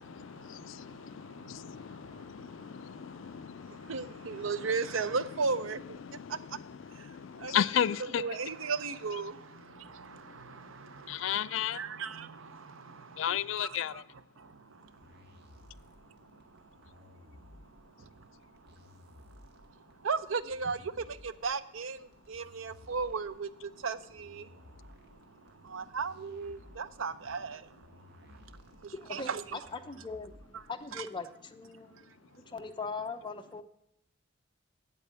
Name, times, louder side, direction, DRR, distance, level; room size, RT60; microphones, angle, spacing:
voice 1, 0.0-4.7 6.0-8.4 10.0-10.2 10.5-11.8 13.2-14.0, left 9 dB, 75° left, 0.4 m, -35 dB
voice 2, 3.8-6.0 7.4-7.6 8.2-14.0 14.4-14.5 20.0-24.5 25.6-27.7 28.8-29.6 30.9-31.1, right 4 dB, 85° right, 0.6 m, -36 dB
sound 1, 14.9-30.8, left 1 dB, 55° right, 1.7 m, -57 dB
voice 3, 28.9-30.3 30.7-32.0 32.5-33.6, left 4 dB, 25° left, 0.7 m, -40 dB
8.3 x 8.3 x 8.2 m
head